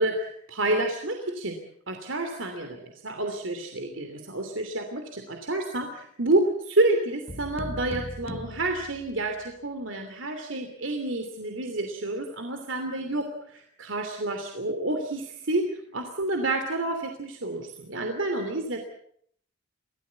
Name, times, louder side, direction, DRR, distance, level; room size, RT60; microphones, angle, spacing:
voice 1, 0.0-1.6 1.9-18.8, right 2 dB, 65° right, 5 dB, 2.9 m, -29 dB
sound 1, 7.3-9.5, left 1 dB, 30° left, 1.0 m, -39 dB
24.5 x 17.0 x 8.3 m, 0.66 s
head